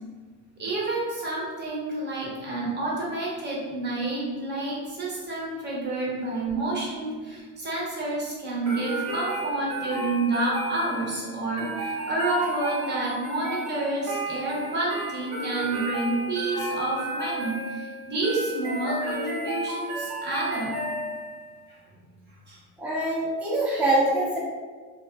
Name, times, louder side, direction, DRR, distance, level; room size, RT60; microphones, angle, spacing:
voice 1, 0.6-20.7 21.7-21.8 22.5-22.6, right 2 dB, 25° right, -5 dB, 0.8 m, -29 dB
sound 1, 8.6-21.4, right 1 dB, 60° right, 1.1 m, -33 dB
voice 2, 22.8-24.4, right 1 dB, 5° right, -7 dB, 0.5 m, -24 dB
2.4 x 2.3 x 2.3 m, 1.5 s
supercardioid pair, 105°, 39 cm